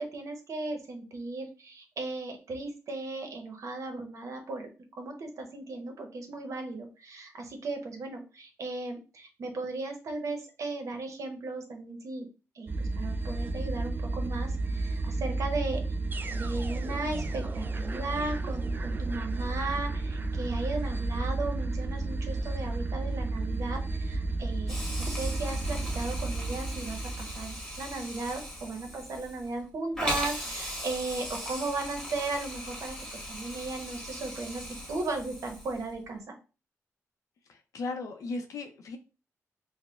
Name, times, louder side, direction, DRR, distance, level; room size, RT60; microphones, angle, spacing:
voice 1, 0.0-4.7 5.0-12.3 12.5-15.8 16.3-36.4, right 2 dB, 70° right, 0.8 m, -36 dB
sound 1, 12.7-28.0, right 2 dB, 35° right, 0.4 m, -32 dB
Hiss, 24.7-35.9, equal, 10° left, 1.3 m, -39 dB
voice 2, 37.5-39.0, left 3 dB, 85° left, 0.5 m, -36 dB
4.7 x 2.1 x 2.3 m
cardioid pair, 90°, 6 cm